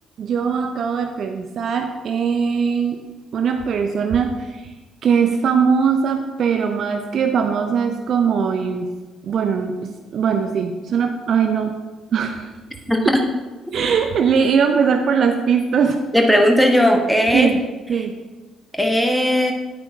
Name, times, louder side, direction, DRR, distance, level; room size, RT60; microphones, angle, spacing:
voice 1, 0.2-3.0 3.3-4.6 5.0-8.9 9.2-11.7 12.1-12.5 13.7-16.0 17.3-17.6 17.9-18.1, right 6 dB, 55° right, 6 dB, 0.6 m, -20 dB
voice 2, 16.1-17.5 18.8-19.5, equal, ahead, 2 dB, 1.5 m, -16 dB
9.2 x 9.1 x 2.8 m, 1.2 s
figure-of-eight pair, 45°, 0 cm